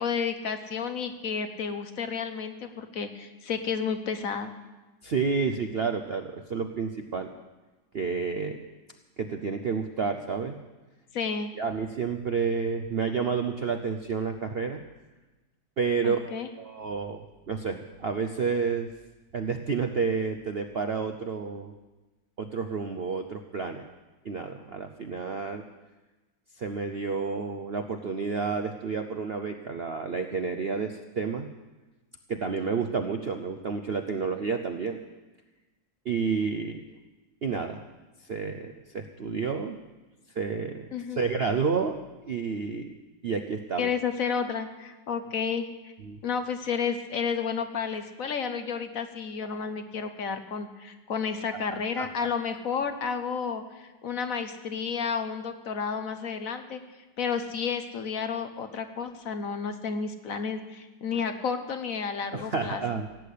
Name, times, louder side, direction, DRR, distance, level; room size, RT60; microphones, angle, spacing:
voice 1, 0.0-4.5 11.1-11.5 16.0-16.5 40.9-41.2 43.8-45.9 46.2-56.8 57.2-62.8, left 6 dB, 55° left, 8 dB, 1.3 m, -31 dB
voice 2, 5.0-7.3 7.9-8.6 9.2-10.6 11.6-14.8 15.8-18.9 19.3-21.7 22.4-23.9 24.2-25.6 26.5-31.5 32.3-35.0 36.0-36.8 37.4-37.8 38.2-39.8 40.3-42.0 42.2-42.9 43.2-43.9 46.0-46.2 51.7-52.3 62.3-63.2, right 5 dB, 55° right, 7 dB, 0.7 m, -30 dB
17.0 x 8.4 x 8.4 m, 1.2 s
omnidirectional pair, 1.9 m